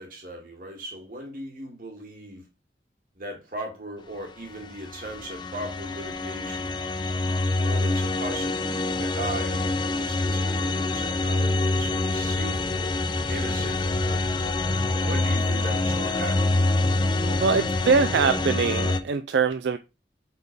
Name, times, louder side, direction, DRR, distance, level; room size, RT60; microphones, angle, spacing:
voice 1, 0.0-2.4 3.2-6.8 7.5-9.7 10.0-12.9 13.3-14.4 15.0-16.6 17.1-17.4, right 1 dB, 50° right, 2.1 m, -38 dB
sound 1, 4.6-19.0, left 2 dB, 25° left, 0.5 m, -26 dB
voice 2, 17.4-19.8, right 5 dB, 75° right, 0.4 m, -23 dB
4.7 x 4.4 x 5.3 m
head